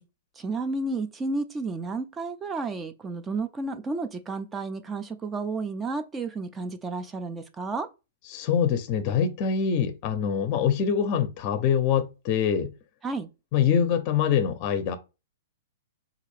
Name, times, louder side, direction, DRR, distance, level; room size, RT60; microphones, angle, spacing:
voice 1, 0.4-7.9 13.0-13.3, right 3 dB, 15° right, 0.3 m, -31 dB
voice 2, 8.3-12.7 13.5-15.0, left 7 dB, 35° left, 0.6 m, -24 dB
3.6 x 2.4 x 3.2 m
hypercardioid pair, 150°, 0 cm